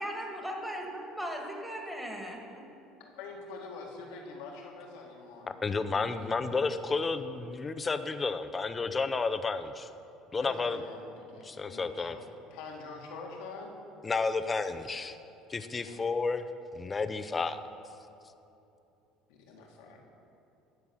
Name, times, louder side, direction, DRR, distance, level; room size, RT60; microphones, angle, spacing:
voice 1, 0.0-2.6, equal, 5° right, 0 dB, 1.9 m, -38 dB
voice 2, 3.0-5.8 10.3-12.2 12.5-13.7 15.8-16.0 19.3-20.0, left 3 dB, 80° left, 0 dB, 1.7 m, -45 dB
voice 3, 5.4-9.9 10.3-10.8 11.4-12.2 14.0-15.1 15.5-16.4 16.7-17.6, left 4 dB, 25° left, 11 dB, 0.6 m, -31 dB
12.5 x 4.6 x 7.0 m, 2.8 s
supercardioid pair, 85°, 0 cm